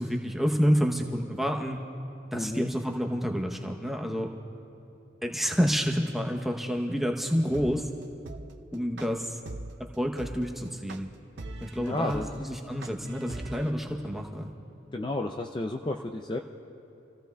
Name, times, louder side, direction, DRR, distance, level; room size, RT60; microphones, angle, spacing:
voice 1, 0.0-1.8 2.3-4.3 5.2-7.9 8.7-9.4 10.0-11.1 11.6-14.5, equal, ahead, 1 dB, 0.8 m, -28 dB
voice 2, 2.3-2.7 11.8-12.4 14.9-16.4, left 2 dB, 25° left, 4 dB, 0.4 m, -32 dB
sound 1, 7.5-13.7, right 2 dB, 75° right, 0.6 m, -40 dB
29.5 x 16.0 x 2.3 m, 2.9 s
head